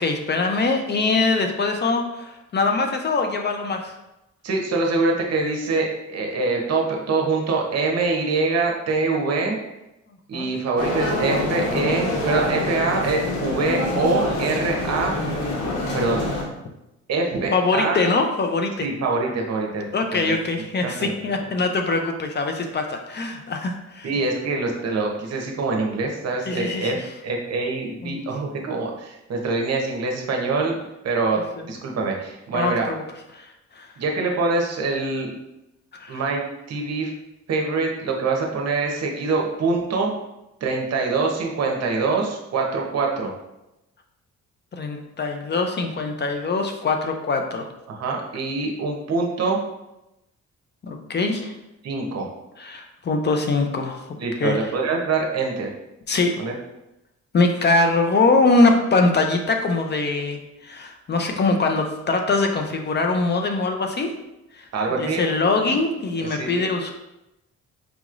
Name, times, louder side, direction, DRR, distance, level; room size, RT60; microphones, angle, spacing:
voice 1, 0.0-3.9 10.3-10.5 17.5-18.9 19.9-24.1 26.5-26.9 28.0-28.2 32.5-33.0 33.3-33.9 35.9-36.2 44.7-47.7 50.8-51.5 52.6-54.6 56.1-56.4 57.3-64.1 64.5-64.6 65.0-66.9, left 3 dB, 35° left, 4 dB, 0.5 m, -23 dB
voice 2, 4.4-9.6 10.3-15.2 15.9-16.3 17.1-18.0 18.8-19.9 20.1-20.4 20.8-21.1 24.0-27.0 27.2-32.9 34.0-35.3 36.1-36.4 36.7-37.1 37.5-40.1 40.6-43.3 47.9-49.6 51.8-52.3 54.2-55.7 56.4-56.5 64.7-65.2 66.2-66.5, right 3 dB, 55° right, 0 dB, 0.9 m, -24 dB
sound 1, 10.8-16.4, left 2 dB, 80° left, 1.1 m, -26 dB
4.9 x 3.0 x 2.5 m, 0.92 s
cardioid pair, 90°, 30 cm